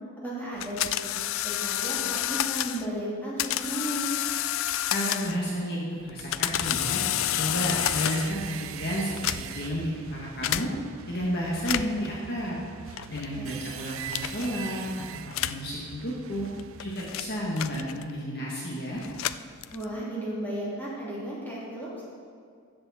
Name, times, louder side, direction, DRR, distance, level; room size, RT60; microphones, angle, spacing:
voice 1, 0.2-1.2 1.4-4.1 13.3-13.6 19.7-22.0, right 1 dB, 10° left, -8 dB, 3.0 m, -34 dB
sound 1, 0.6-2.9 3.4-5.5 6.1-8.4 9.1-9.7 10.4-10.7 11.5-12.1 13.0-13.3 14.1-14.5 15.3-15.7 16.5-18.2 19.0-20.0, left 12 dB, 65° left, 0.3 m, -30 dB
voice 2, 4.9-7.0 7.3-10.7 11.1-12.6 13.1-14.9 15.4-16.5 16.8-19.0, equal, 45° left, -4 dB, 1.6 m, -31 dB
sound 2, 6.5-17.0, right 9 dB, 65° right, 0.4 m, -42 dB
13.0 x 8.7 x 4.3 m, 2.2 s
head